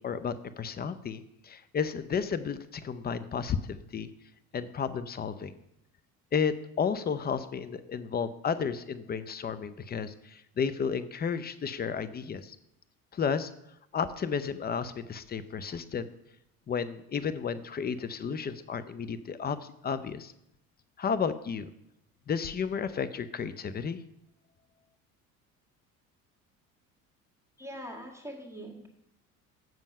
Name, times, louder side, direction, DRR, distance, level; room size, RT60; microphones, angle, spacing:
voice 1, 0.0-4.1 4.5-5.5 6.3-12.6 13.1-13.5 13.9-16.1 16.7-20.3 21.0-21.7 22.3-24.0, left 6 dB, 20° left, 14 dB, 0.6 m, -32 dB
voice 2, 27.6-28.9, equal, 5° right, -2 dB, 1.8 m, -42 dB
7.7 x 7.2 x 5.4 m, 0.79 s
figure-of-eight pair, 60°, 44 cm